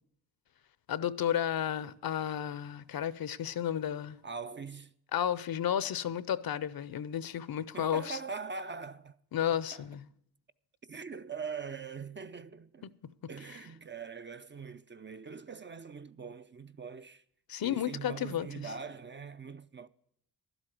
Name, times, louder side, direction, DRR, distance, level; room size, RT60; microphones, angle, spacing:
voice 1, 0.9-4.2 5.1-8.2 9.3-10.0 17.5-18.5, left 10 dB, 60° left, 0.6 m, -32 dB
voice 2, 4.2-4.9 7.7-9.2 9.5-9.9 10.9-12.9 13.3-17.2 17.6-19.9, right 5 dB, 30° right, 0.4 m, -42 dB
11.5 x 8.0 x 7.5 m
cardioid pair, 65°, 40 cm